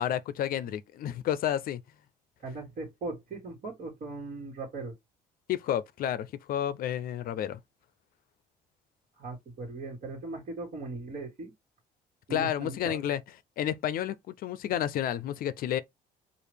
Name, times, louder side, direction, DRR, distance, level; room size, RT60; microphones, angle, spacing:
voice 1, 0.0-1.8 5.5-7.6 12.3-13.2 13.6-15.8, left 10 dB, 60° left, 0.5 m, -30 dB
voice 2, 2.4-5.0 9.2-11.5 12.3-13.0, right 3 dB, 50° right, 1.6 m, -39 dB
4.8 x 2.5 x 3.4 m
cardioid pair, 110°, 17 cm